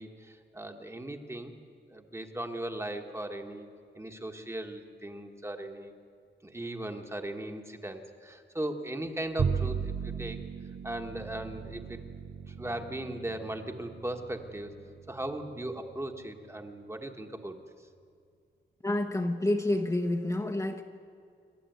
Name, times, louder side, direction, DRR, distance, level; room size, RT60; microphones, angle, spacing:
voice 1, 0.0-1.6 1.9-3.7 3.9-5.9 6.4-10.4 10.8-12.0 12.5-14.7 15.1-17.6, right 1 dB, 15° right, 5 dB, 1.3 m, -38 dB
Bowed string instrument, 9.4-15.8, right 6 dB, 50° right, 0.6 m, -37 dB
voice 2, 18.8-20.8, left 1 dB, 15° left, 2 dB, 0.9 m, -28 dB
27.5 x 12.5 x 9.3 m, 2.3 s
wide cardioid pair, 175°, 20 cm